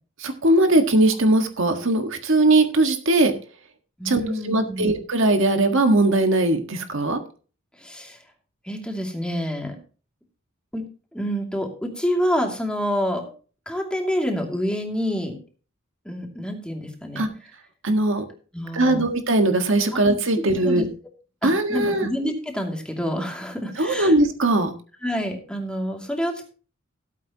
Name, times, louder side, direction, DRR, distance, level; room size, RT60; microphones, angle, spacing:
voice 1, 0.2-3.3 4.0-7.2 17.1-17.3 17.8-18.2 18.7-20.8 21.4-22.1 23.8-24.7, right 2 dB, 65° right, 6 dB, 1.6 m, -20 dB
voice 2, 4.0-4.9 7.8-8.2 8.6-9.8 10.7-10.8 11.1-13.3 13.7-15.4 16.0-17.2 18.5-19.1 20.6-20.9 21.4-24.1 25.0-26.5, equal, 5° left, 2 dB, 2.5 m, -27 dB
17.0 x 8.5 x 2.9 m, 0.37 s
head